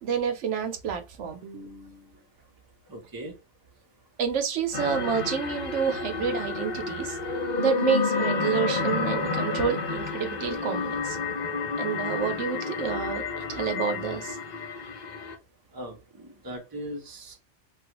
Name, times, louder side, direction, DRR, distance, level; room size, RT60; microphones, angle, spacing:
voice 1, 0.0-2.1 4.2-7.2 7.6-11.2 11.8-13.2 13.5-14.4, right 7 dB, 80° right, 1.0 m, -29 dB
voice 2, 2.9-3.3 15.7-17.4, equal, 20° right, 0.8 m, -39 dB
sound 1, 4.7-15.3, left 4 dB, 50° left, 0.6 m, -30 dB
3.2 x 2.3 x 2.9 m
omnidirectional pair, 1.2 m